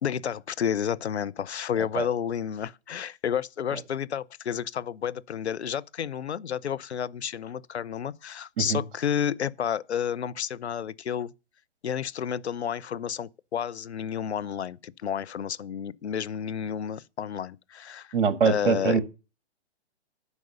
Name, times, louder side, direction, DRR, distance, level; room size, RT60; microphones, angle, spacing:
voice 1, 0.0-11.3 11.8-18.1 18.4-19.0, left 8 dB, 70° left, 0.7 m, -31 dB
voice 2, 18.1-19.0, right 6 dB, 50° right, 1.8 m, -23 dB
9.7 x 6.0 x 8.1 m
figure-of-eight pair, 125°, 34 cm